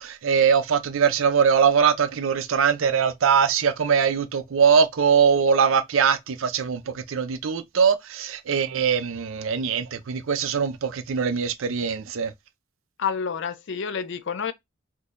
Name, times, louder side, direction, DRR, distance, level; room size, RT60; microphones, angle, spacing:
voice 1, 0.0-12.3, right 6 dB, 70° right, 0.5 m, -22 dB
voice 2, 13.0-14.5, left 6 dB, 60° left, 0.4 m, -28 dB
3.7 x 2.7 x 2.5 m
head